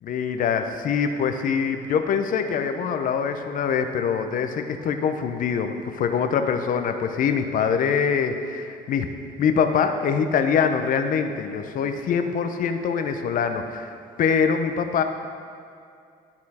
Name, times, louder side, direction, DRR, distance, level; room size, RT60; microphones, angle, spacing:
voice 1, 0.0-13.9 14.2-15.0, left 6 dB, 55° left, 7 dB, 0.6 m, -24 dB
11.5 x 4.4 x 4.2 m, 2.4 s
cardioid pair, 110°, 17 cm